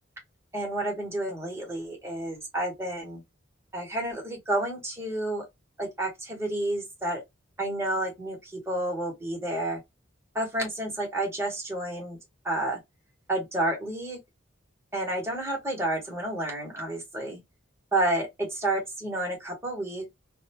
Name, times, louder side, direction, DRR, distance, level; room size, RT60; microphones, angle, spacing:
voice 1, 0.5-3.2 3.7-5.4 5.8-7.2 7.6-9.8 10.3-12.2 12.4-12.8 13.3-14.2 14.9-17.4 17.9-20.0, right 1 dB, 15° right, 1.0 m, -30 dB
2.6 x 2.1 x 2.8 m
head